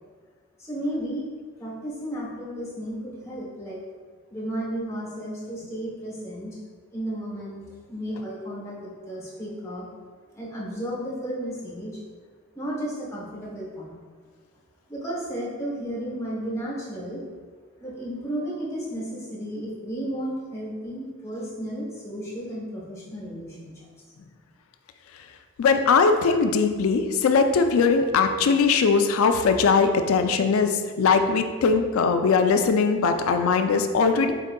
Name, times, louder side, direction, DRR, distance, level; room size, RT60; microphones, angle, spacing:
voice 1, 0.6-1.3 1.6-3.8 4.3-6.6 6.9-9.9 10.3-12.0 12.5-14.0 14.9-17.2 17.8-23.7, right 1 dB, 15° left, -6 dB, 0.9 m, -33 dB
voice 2, 25.6-34.3, left 5 dB, 70° left, 7 dB, 0.3 m, -20 dB
4.2 x 3.7 x 2.2 m, 1.5 s
head